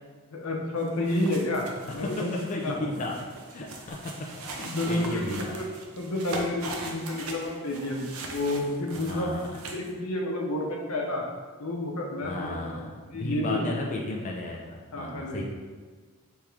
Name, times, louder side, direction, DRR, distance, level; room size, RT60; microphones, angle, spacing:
voice 1, 0.3-1.7 1.9-2.8 4.6-5.6 6.0-8.0 8.3-11.2 11.6-13.6 14.9-15.4, left 1 dB, 90° left, 0 dB, 0.8 m, -30 dB
sound 1, 0.8-9.9, right 2 dB, 75° right, 0.6 m, -40 dB
voice 2, 1.9-3.2 3.5-5.6 9.0-9.4 12.2-15.4, left 2 dB, 35° left, -1 dB, 0.4 m, -34 dB
3.5 x 2.9 x 4.7 m, 1.5 s
head